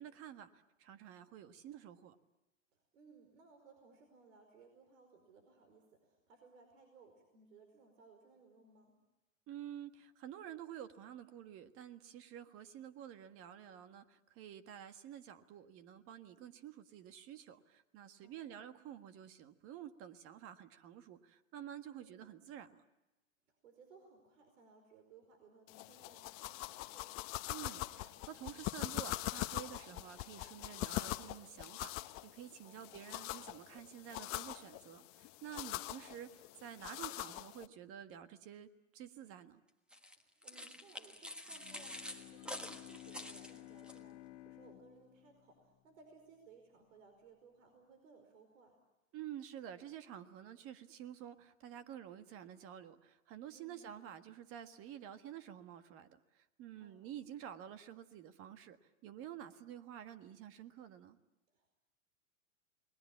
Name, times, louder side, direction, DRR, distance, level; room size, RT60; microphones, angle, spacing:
voice 1, 0.0-2.2 9.5-22.8 27.5-36.3 36.6-39.6 49.1-58.8 59.0-61.2, right 10 dB, 35° right, 11 dB, 1.6 m, -50 dB
voice 2, 2.7-9.0 18.2-18.6 21.9-22.4 23.5-27.1 32.6-33.1 35.7-36.0 40.1-48.8 53.5-54.0 56.8-57.2 61.5-61.7, right 4 dB, 65° right, 6 dB, 5.0 m, -62 dB
sound 1, 25.7-37.7, left 18 dB, 35° left, 1.0 m, -43 dB
sound 2, 39.9-44.0, left 1 dB, ahead, 1.4 m, -48 dB
Bowed string instrument, 41.5-46.3, left 16 dB, 55° left, 1.7 m, -55 dB
29.5 x 21.0 x 8.6 m, 0.98 s
hypercardioid pair, 130°, 40 cm